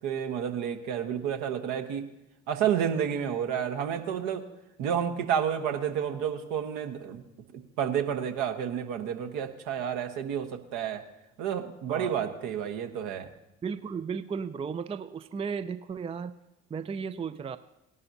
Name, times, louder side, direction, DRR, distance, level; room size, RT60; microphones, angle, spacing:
voice 1, 0.0-2.0 2.5-4.4 4.8-7.2 7.5-11.0 11.4-13.3, right 8 dB, 65° right, 6 dB, 1.3 m, -30 dB
voice 2, 13.6-16.3 16.7-17.6, right 6 dB, 15° right, 13 dB, 0.5 m, -34 dB
18.0 x 11.0 x 2.8 m, 0.92 s
figure-of-eight pair, 50°, 35 cm